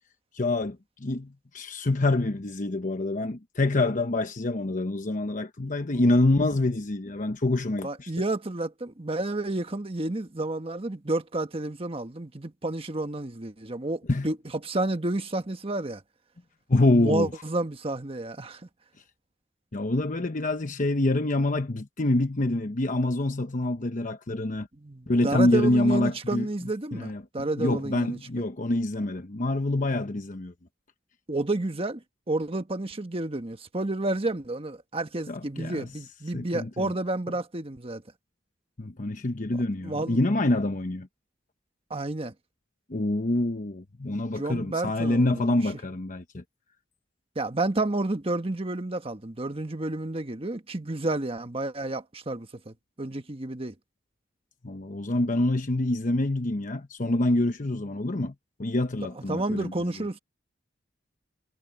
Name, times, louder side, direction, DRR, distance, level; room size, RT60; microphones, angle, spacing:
voice 1, 0.3-8.1 14.1-14.3 16.7-17.3 19.7-24.7 25.1-26.5 26.9-27.2 27.6-30.5 35.3-35.9 36.3-36.9 38.8-41.1 42.9-46.4 54.6-58.3 58.6-59.7, left 2 dB, 45° left, 1.0 m, -26 dB
voice 2, 7.8-14.4 14.6-16.0 16.9-18.6 24.8-28.2 31.3-32.0 32.3-38.0 39.5-40.2 41.9-42.3 44.4-45.6 47.3-53.7 59.3-60.2, right 2 dB, 30° right, 1.3 m, -30 dB
head